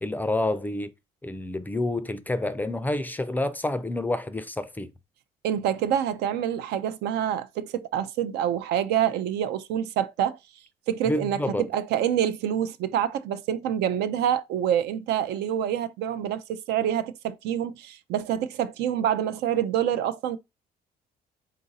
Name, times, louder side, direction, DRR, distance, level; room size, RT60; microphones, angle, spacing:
voice 1, 0.0-0.9 1.2-4.9 11.1-11.6, left 2 dB, 10° left, 0.4 m, -28 dB
voice 2, 5.4-10.4 10.9-11.4 11.7-20.4, right 10 dB, 75° right, 0.5 m, -26 dB
3.8 x 2.5 x 4.0 m
cardioid pair, 110°, 17 cm